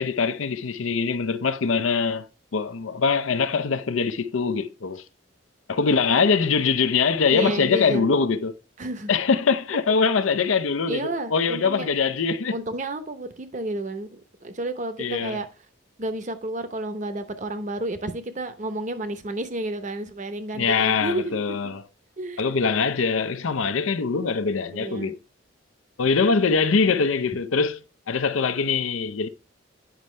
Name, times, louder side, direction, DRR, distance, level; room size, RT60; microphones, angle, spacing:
voice 1, 0.0-2.3 2.5-5.0 5.7-8.5 9.1-12.6 15.0-15.4 20.5-21.8 22.4-25.2 26.0-27.8 28.1-29.3, left 5 dB, 85° left, 0.6 m, -23 dB
voice 2, 7.3-8.2 8.8-9.1 10.1-10.3 10.9-11.9 12.5-15.5 16.0-21.7 22.2-22.4 24.7-25.1, right 1 dB, 35° right, 0.8 m, -31 dB
9.0 x 5.4 x 3.2 m
head